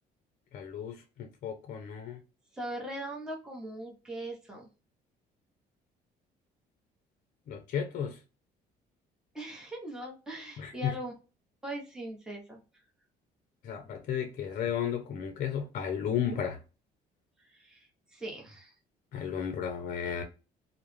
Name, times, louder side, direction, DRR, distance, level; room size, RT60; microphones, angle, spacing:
voice 1, 0.5-2.2 7.5-8.2 10.6-11.0 13.6-16.6 19.1-20.2, left 8 dB, 55° left, 0.5 m, -33 dB
voice 2, 2.5-4.7 9.3-11.1 11.6-12.6 17.4-17.9 18.1-18.7, right 1 dB, 5° right, 0.8 m, -40 dB
2.2 x 2.0 x 3.0 m
cardioid pair, 110°, 17 cm